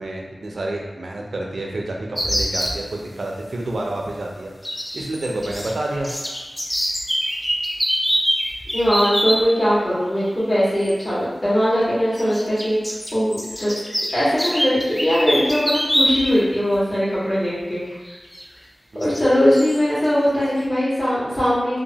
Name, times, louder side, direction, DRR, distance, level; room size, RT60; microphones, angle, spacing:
voice 1, 0.0-4.5 4.9-6.1 18.9-19.1, right 1 dB, 85° right, -1 dB, 0.4 m, -29 dB
sound 1, 2.2-2.8 4.6-5.7 6.0-9.4 10.8-10.9 12.1-16.4 16.7-16.8 18.3-18.4 19.0-19.2 19.6-19.8, equal, 15° left, 0.4 m, -24 dB
voice 2, 8.7-12.8 13.1-13.7 14.1-18.2 19.0-21.8, equal, 40° left, -10 dB, 1.4 m, -20 dB
2.9 x 2.1 x 2.8 m, 1.3 s
wide cardioid pair, 85°, 0 cm